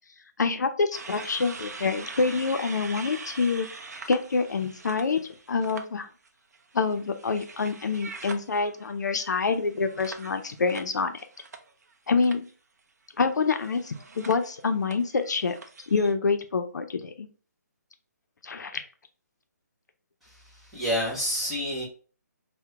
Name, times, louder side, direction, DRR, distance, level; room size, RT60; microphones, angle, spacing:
voice 1, 0.4-3.7 4.1-5.2 5.5-6.1 6.7-11.1 12.1-12.5 13.2-15.6 15.9-17.3 18.4-18.8, left 4 dB, 75° left, 8 dB, 0.5 m, -26 dB
sound 1, 0.9-5.8 6.2-11.9 12.2-12.5 13.4-16.1, right 4 dB, 65° right, 0.5 m, -43 dB
voice 2, 20.2-21.8, equal, ahead, -7 dB, 0.5 m, -29 dB
2.8 x 2.1 x 3.3 m, 0.39 s
hypercardioid pair, 170°, 9 cm